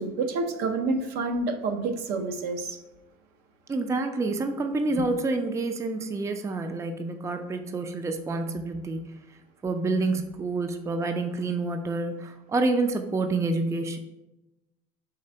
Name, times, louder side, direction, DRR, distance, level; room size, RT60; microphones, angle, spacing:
voice 1, 0.0-2.8, right 3 dB, 65° right, 6 dB, 0.6 m, -28 dB
voice 2, 3.7-9.0 9.6-14.0, right 3 dB, 15° right, 7 dB, 0.4 m, -28 dB
3.8 x 3.2 x 4.3 m, 0.94 s
supercardioid pair, 90°, 18 cm